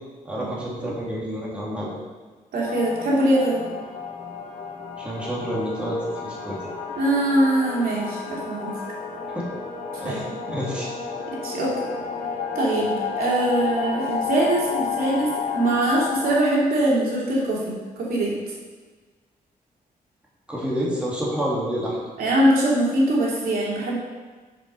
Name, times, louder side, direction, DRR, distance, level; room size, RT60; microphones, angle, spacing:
voice 1, 0.2-1.9 5.0-6.6 9.3-9.4 10.0-10.9 20.5-22.0, equal, 5° right, -6 dB, 2.0 m, -28 dB
voice 2, 2.5-3.6 7.0-8.7 10.0-10.2 11.4-11.9 12.5-18.3 22.2-24.0, right 1 dB, 85° right, -5 dB, 2.8 m, -22 dB
sound 1, 2.7-16.4, left 5 dB, 60° left, 1.4 m, -31 dB
7.4 x 7.1 x 5.4 m, 1.3 s
wide cardioid pair, 165°, 15 cm